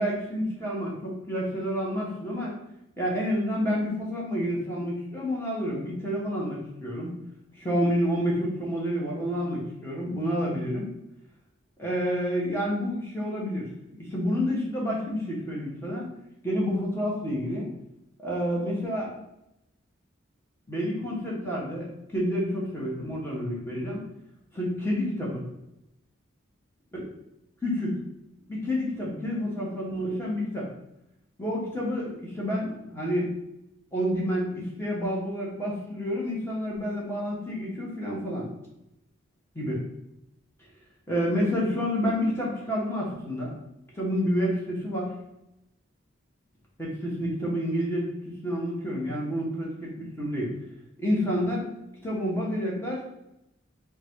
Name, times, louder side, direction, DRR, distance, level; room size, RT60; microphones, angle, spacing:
voice 1, 0.0-2.5 3.0-7.2 7.5-10.9 11.8-13.7 14.0-16.0 16.4-17.7 18.2-19.1 20.7-24.0 24.5-25.4 26.9-27.0 27.6-28.0 28.5-30.7 31.4-33.3 33.9-38.5 39.5-39.8 41.1-43.5 43.9-45.1 46.8-50.5 51.0-51.7 52.0-53.0, equal, 10° left, -5 dB, 1.1 m, -29 dB
3.8 x 2.4 x 4.5 m, 0.85 s
head